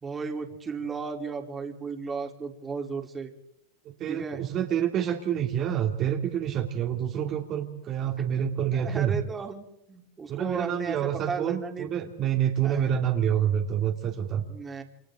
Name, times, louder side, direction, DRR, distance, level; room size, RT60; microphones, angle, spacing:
voice 1, 0.0-3.3 4.1-4.4 8.8-11.0 11.3-11.9 12.6-12.8 14.5-14.8, right 5 dB, 20° right, 3 dB, 3.7 m, -34 dB
voice 2, 3.8-9.2 10.3-14.4, right 9 dB, 40° right, 2 dB, 2.9 m, -27 dB
29.0 x 27.5 x 3.9 m, 0.83 s
hypercardioid pair, 90°, 0 cm